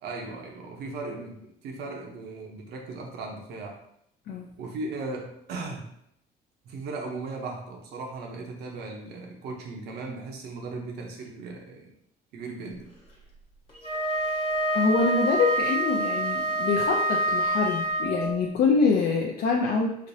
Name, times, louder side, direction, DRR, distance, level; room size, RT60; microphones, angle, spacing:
voice 1, 0.0-3.8 4.6-5.9 6.6-11.9 12.3-12.9, right 3 dB, 75° right, 1 dB, 0.8 m, -37 dB
Wind instrument woodwind instrument, 13.7-18.4, right 1 dB, 30° left, 1.1 m, -26 dB
voice 2, 14.7-20.0, left 4 dB, 65° left, 0 dB, 0.4 m, -25 dB
5.0 x 2.0 x 2.7 m, 0.73 s
cardioid pair, 110°, 17 cm